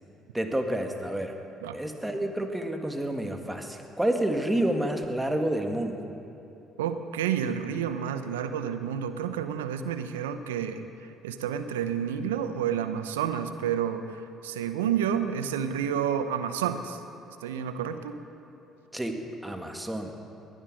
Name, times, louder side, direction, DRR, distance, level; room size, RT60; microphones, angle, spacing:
voice 1, 0.3-1.4 1.7-6.0 18.9-20.1, right 1 dB, 10° right, 4 dB, 2.0 m, -29 dB
voice 2, 6.8-10.8 11.2-17.0 17.4-18.2, right 8 dB, 85° right, 9 dB, 0.8 m, -30 dB
19.5 x 11.0 x 6.4 m, 2.9 s
hypercardioid pair, 55°, 0 cm